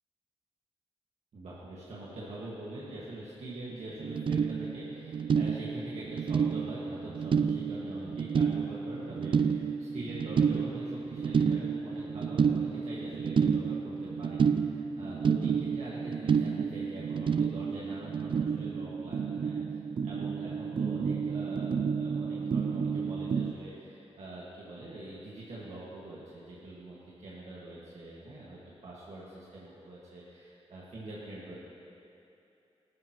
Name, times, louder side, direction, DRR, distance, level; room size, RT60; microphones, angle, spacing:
voice 1, 1.3-19.6 20.0-31.6, right 1 dB, 90° right, -7 dB, 1.8 m, -44 dB
sound 1, 3.7-3.8 4.0-23.5, right 6 dB, 50° right, 0.3 m, -30 dB
15.0 x 12.5 x 3.0 m, 2.8 s
wide cardioid pair, 100°, 11 cm